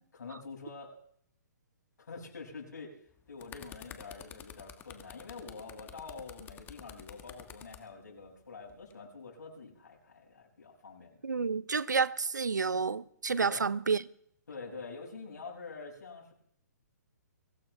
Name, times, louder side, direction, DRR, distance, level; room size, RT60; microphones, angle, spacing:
voice 1, 0.1-0.9 2.0-2.9 3.3-11.2 13.4-13.7 14.5-16.3, left 4 dB, 75° left, 7.1 m, -46 dB
sound 1, 3.1-7.8 8.7-8.9, left 10 dB, 20° left, 1.5 m, -49 dB
voice 2, 11.2-14.0, right 5 dB, 90° right, 0.7 m, -30 dB
23.0 x 17.5 x 3.5 m
hypercardioid pair, 135°, 9 cm